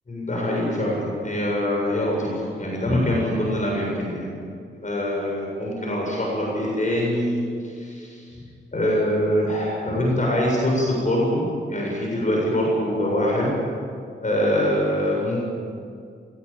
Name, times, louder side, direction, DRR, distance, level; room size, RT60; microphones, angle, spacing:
voice 1, 0.1-4.5 4.8-8.3 8.7-13.6 14.2-15.4, left 1 dB, 40° left, -2 dB, 7.8 m, -24 dB
23.0 x 19.0 x 9.0 m, 2.3 s
cardioid pair, 75°, 20 cm